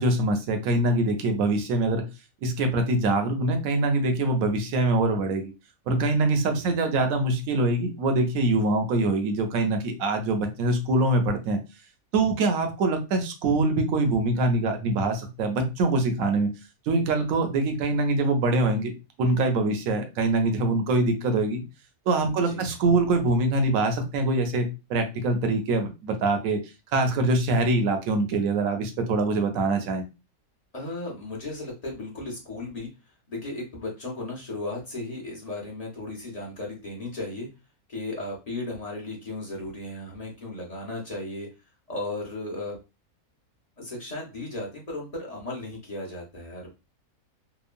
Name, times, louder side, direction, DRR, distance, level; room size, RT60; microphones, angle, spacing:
voice 1, 0.0-2.0 2.4-5.5 5.9-11.6 12.1-16.5 16.9-18.9 19.2-21.6 22.1-26.6 26.9-30.0, right 2 dB, 75° right, 6 dB, 1.0 m, -24 dB
voice 2, 22.3-22.7 30.7-32.9 33.3-37.5 37.9-41.5 41.9-42.8 43.8-46.7, left 2 dB, 35° left, -3 dB, 0.7 m, -35 dB
2.9 x 2.1 x 2.4 m, 0.27 s
omnidirectional pair, 1.5 m